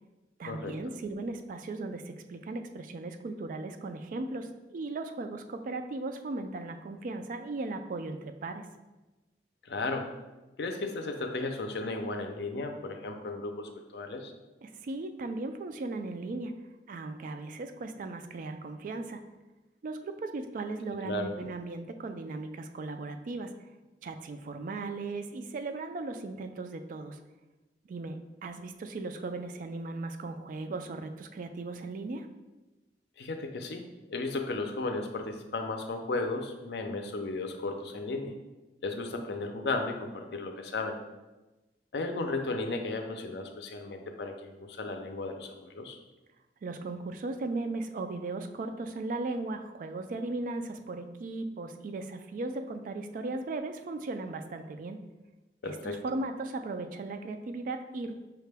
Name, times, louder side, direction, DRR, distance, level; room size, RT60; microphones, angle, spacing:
voice 1, 0.4-8.7 14.6-16.5 16.9-19.2 19.8-23.5 24.0-27.2 27.9-32.3 46.6-55.0 55.6-58.1, right 3 dB, 50° right, 7 dB, 0.3 m, -37 dB
voice 2, 9.6-10.1 10.6-14.3 21.0-21.3 33.2-38.3 38.8-41.0 41.9-46.0 55.6-56.0, left 3 dB, 65° left, 5 dB, 0.5 m, -35 dB
5.6 x 2.2 x 3.3 m, 1.1 s
head